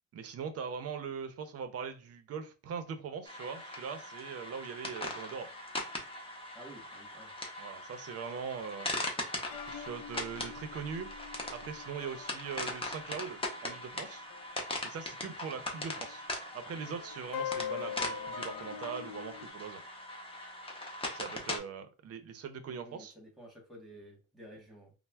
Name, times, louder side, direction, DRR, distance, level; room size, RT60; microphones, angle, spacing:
voice 1, 0.1-5.5 7.6-8.9 9.6-11.1 11.5-14.3 14.8-16.3 16.5-19.8 21.1-23.1, right 6 dB, 50° right, 0.5 m, -41 dB
sound 1, 3.3-21.6, left 2 dB, 15° left, 0.6 m, -40 dB
voice 2, 6.5-7.4 15.5-15.6 22.7-24.9, right 1 dB, ahead, 1.1 m, -52 dB
sound 2, 9.5-14.7 15.0-15.1 15.7-19.5, left 7 dB, 85° left, 0.5 m, -43 dB
4.2 x 2.0 x 2.2 m
cardioid pair, 140°, 33 cm